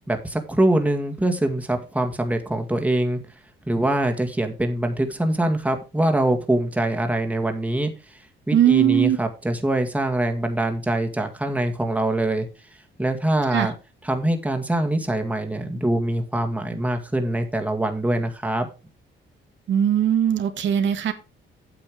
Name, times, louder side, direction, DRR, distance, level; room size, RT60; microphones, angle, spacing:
voice 1, 0.1-3.2 3.7-8.2 8.5-12.5 13.0-13.7 14.0-18.7, right 1 dB, 5° right, 4 dB, 1.9 m, -23 dB
voice 2, 8.5-9.2 13.5-13.7 19.7-21.1, right 9 dB, 65° right, 7 dB, 1.6 m, -19 dB
8.8 x 7.0 x 4.7 m, 0.30 s
cardioid pair, 90°, 20 cm